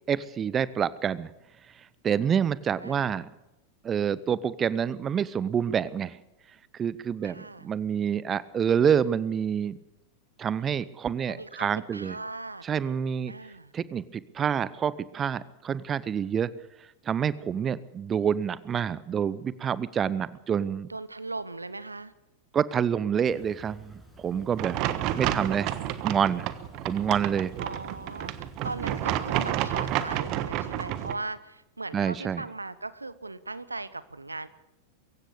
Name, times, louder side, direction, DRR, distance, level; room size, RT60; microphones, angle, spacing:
voice 1, 0.1-1.3 1.8-3.3 3.8-6.2 6.7-9.8 10.4-12.2 12.6-13.3 13.7-16.5 17.0-20.9 22.5-24.9 25.2-25.8 26.0-26.5 26.8-27.5 31.9-32.4, right 8 dB, 25° right, 19 dB, 0.7 m, -27 dB
voice 2, 2.8-3.1 7.2-7.7 11.3-12.6 13.3-13.7 20.9-22.1 25.1-25.3 27.6-34.5, right 3 dB, 80° right, 16 dB, 1.0 m, -38 dB
Chirp tweet, 23.2-30.2, left 1 dB, ahead, 6.8 m, -53 dB
sound 1, 24.6-31.1, right 12 dB, 40° right, 1.2 m, -30 dB
23.0 x 16.0 x 8.3 m, 0.89 s
figure-of-eight pair, 90°, 0 cm